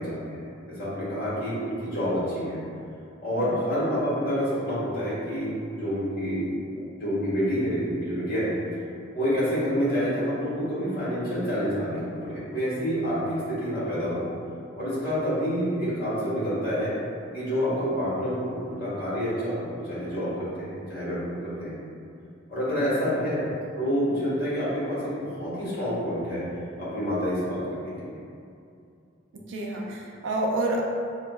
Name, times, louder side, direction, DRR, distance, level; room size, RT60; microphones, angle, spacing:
voice 1, 0.0-2.6 3.2-6.5 6.9-8.5 9.1-14.3 14.8-16.9 17.3-21.2 21.6-21.8 22.5-23.4 23.8-26.5 26.8-27.9, equal, 50° left, -11 dB, 1.4 m, -28 dB
voice 2, 29.3-30.8, right 2 dB, 70° right, -1 dB, 0.5 m, -29 dB
5.3 x 2.0 x 2.2 m, 2.5 s
head